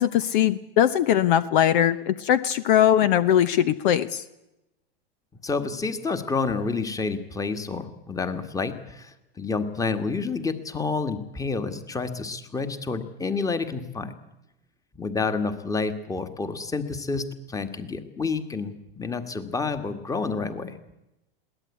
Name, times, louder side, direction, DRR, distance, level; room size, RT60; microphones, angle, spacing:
voice 1, 0.0-4.2, left 10 dB, 55° left, 14 dB, 1.0 m, -20 dB
voice 2, 5.4-14.1 14.9-20.7, left 4 dB, 10° left, 10 dB, 1.7 m, -29 dB
22.0 x 17.5 x 8.4 m, 0.93 s
hypercardioid pair, 125°, 30 cm